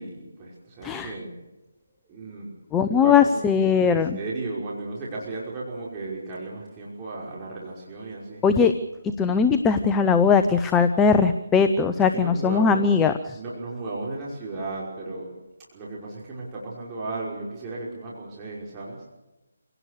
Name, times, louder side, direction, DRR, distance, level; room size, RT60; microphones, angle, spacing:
voice 1, 0.0-1.4 2.1-2.5 2.8-3.4 3.8-8.4 11.9-12.9 13.3-15.3 15.7-19.1, right 2 dB, 20° right, -5 dB, 5.6 m, -35 dB
voice 2, 0.8-1.1 2.7-4.2 8.4-8.7 9.2-13.4, left 6 dB, 10° left, 8 dB, 0.8 m, -20 dB
27.5 x 18.0 x 6.8 m, 1.0 s
figure-of-eight pair, 160°, 0 cm